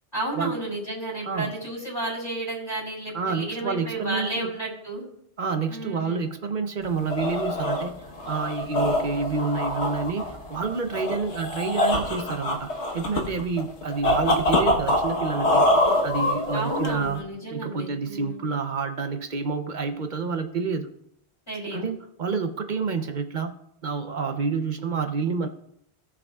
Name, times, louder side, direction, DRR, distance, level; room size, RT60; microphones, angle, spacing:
voice 1, 0.1-5.0 5.7-6.2 16.5-18.5 21.5-21.8, right 2 dB, 25° left, -6 dB, 3.1 m, -32 dB
voice 2, 1.2-1.5 3.1-4.5 5.4-7.9 8.3-15.7 16.0-17.2 17.5-20.9 21.7-23.5 23.8-25.5, right 5 dB, 50° right, 7 dB, 0.8 m, -28 dB
sound 1, 6.8-17.2, left 1 dB, 85° left, 1.5 m, -25 dB
17.5 x 6.1 x 2.3 m, 0.73 s
omnidirectional pair, 1.1 m